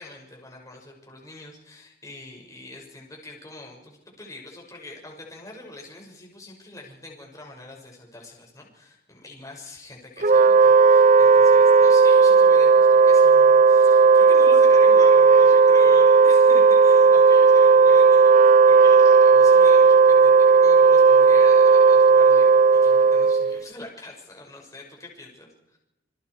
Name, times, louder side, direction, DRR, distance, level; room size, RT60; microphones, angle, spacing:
voice 1, 0.0-25.8, left 2 dB, 20° left, -1 dB, 6.2 m, -43 dB
Wind instrument woodwind instrument, 10.2-23.6, right 5 dB, 45° right, 0.7 m, -14 dB
26.5 x 22.5 x 4.9 m, 0.90 s
head